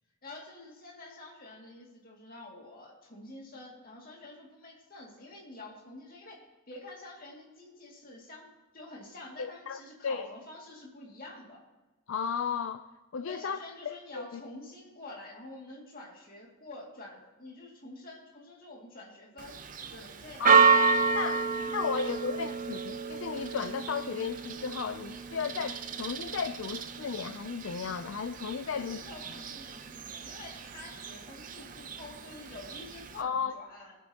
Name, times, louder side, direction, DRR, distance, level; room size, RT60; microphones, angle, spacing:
voice 1, 0.2-8.5 8.7-11.6 13.2-19.6 19.9-22.5 28.7-34.0, left 2 dB, 40° left, -2 dB, 2.3 m, -48 dB
voice 2, 9.4-10.3 12.1-12.9 13.1-14.4 20.4-20.8 21.2-21.4 21.7-29.0 33.2-33.5, left 6 dB, 65° left, 10 dB, 0.4 m, -34 dB
Church bell, 19.4-33.2, right 5 dB, 35° right, 0.6 m, -30 dB
21.0 x 8.2 x 2.9 m, 1.1 s
head